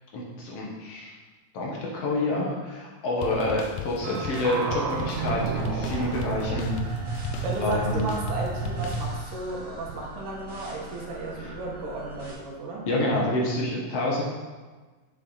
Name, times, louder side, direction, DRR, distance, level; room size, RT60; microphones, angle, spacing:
voice 1, 0.1-1.1 1.5-6.7 7.6-8.0 12.9-14.2, left 1 dB, 60° left, -3 dB, 1.6 m, -28 dB
sound 1, 3.2-9.6, left 7 dB, 85° left, 2.5 m, -38 dB
sound 2, 4.0-9.3 9.9-10.0, right 5 dB, 85° right, 2.8 m, -31 dB
sound 3, 5.9-12.3, left 1 dB, 10° right, 1.1 m, -44 dB
voice 2, 7.4-12.8, right 2 dB, 65° right, -2 dB, 2.7 m, -34 dB
7.6 x 7.0 x 4.0 m, 1.3 s
omnidirectional pair, 4.4 m